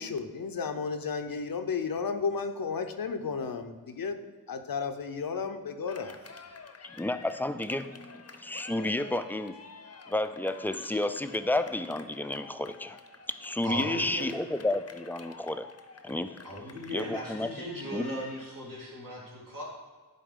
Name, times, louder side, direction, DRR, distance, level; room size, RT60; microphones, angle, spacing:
voice 1, 0.0-6.2, left 5 dB, 85° left, 7 dB, 0.6 m, -33 dB
Cheering, 5.9-18.5, left 4 dB, 45° left, 0.6 m, -49 dB
voice 2, 6.8-9.5 10.1-13.0 13.3-15.7 16.0-16.3 16.9-17.5 17.9-18.1, left 1 dB, 5° left, 11 dB, 0.3 m, -31 dB
voice 3, 13.6-14.3 16.4-19.6, equal, 70° right, -6 dB, 2.3 m, -37 dB
10.5 x 4.2 x 3.6 m, 1.4 s
wide cardioid pair, 60°, 34 cm